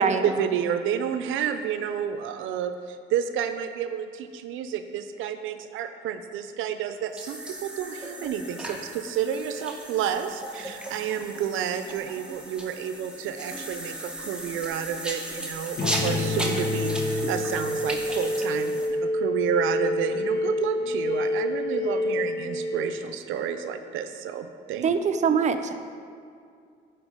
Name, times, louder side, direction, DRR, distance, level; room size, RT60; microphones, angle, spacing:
voice 1, 0.0-24.9, right 8 dB, 85° right, 9 dB, 0.5 m, -30 dB
sound 1, 7.1-18.9, right 1 dB, 5° right, 1.0 m, -36 dB
sound 2, 15.8-23.7, left 1 dB, 45° left, 1.1 m, -28 dB
voice 2, 24.8-25.8, right 6 dB, 35° right, 7 dB, 0.5 m, -23 dB
8.7 x 4.6 x 4.9 m, 2.3 s
cardioid pair, 90°, 20 cm